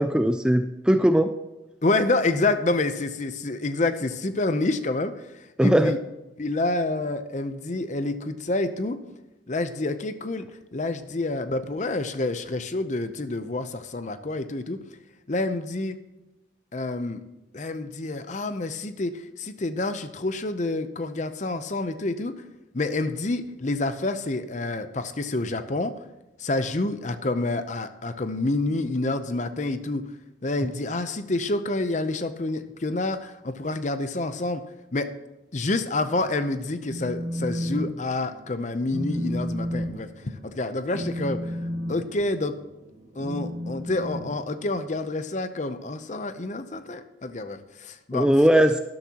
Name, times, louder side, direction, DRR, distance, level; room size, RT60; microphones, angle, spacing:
voice 1, 0.0-1.3 5.6-5.9 48.1-48.8, right 1 dB, 5° right, 8 dB, 0.3 m, -19 dB
voice 2, 1.8-5.1 5.6-6.0 6.4-9.0 9.5-10.5 10.7-14.8 15.3-16.0 16.7-17.2 17.5-22.3 22.7-25.9 26.4-30.1 30.4-34.6 34.9-35.1 35.5-41.5 41.9-42.6 43.2-48.3, left 2 dB, 40° left, 10 dB, 0.7 m, -28 dB
Telephone, 36.9-37.9 38.2-38.5 38.9-45.0, equal, 70° right, 2.0 m, -32 dB
12.5 x 12.0 x 2.9 m, 0.99 s
head